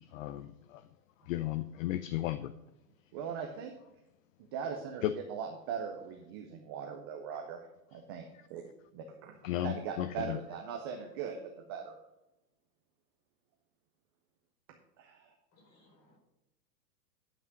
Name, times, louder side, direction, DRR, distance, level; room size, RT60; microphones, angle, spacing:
voice 1, 0.1-0.8 1.3-2.5 5.0-5.1 9.4-10.4, left 14 dB, 55° left, 13 dB, 0.6 m, -34 dB
voice 2, 3.1-3.7 4.5-7.6 7.9-8.2 8.5-8.6 8.9-9.3 9.6-11.4 11.7-11.9 15.0-15.3, right 7 dB, 15° right, 3 dB, 0.3 m, -40 dB
voice 3, 15.5-16.2, left 1 dB, 30° left, 0 dB, 4.2 m, -65 dB
10.5 x 6.0 x 5.9 m, 0.93 s
hypercardioid pair, 120°, 50 cm